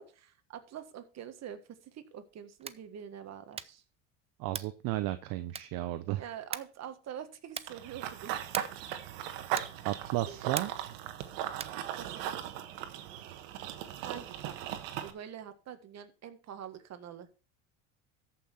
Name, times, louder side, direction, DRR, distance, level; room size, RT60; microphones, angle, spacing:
voice 1, 0.0-3.8 6.2-8.3 10.3-10.4 12.0-12.6 14.0-14.7 15.0-17.3, right 9 dB, 45° right, 9 dB, 1.6 m, -45 dB
sound 1, 2.5-2.9 3.5-3.9 4.5-4.8 5.5-5.9 6.5-6.8 7.5-7.8 8.5-8.9 9.5-9.9 10.5-10.9 11.5-11.9, right 6 dB, 15° right, 0.4 m, -41 dB
voice 2, 4.4-6.3 9.8-10.7, right 16 dB, 60° right, 12 dB, 0.8 m, -33 dB
Run / Bird vocalization bird call bird song, 7.7-15.1, right 11 dB, 80° right, 1.4 m, -38 dB
13.5 x 5.8 x 4.3 m, 0.35 s
supercardioid pair, 100°, 38 cm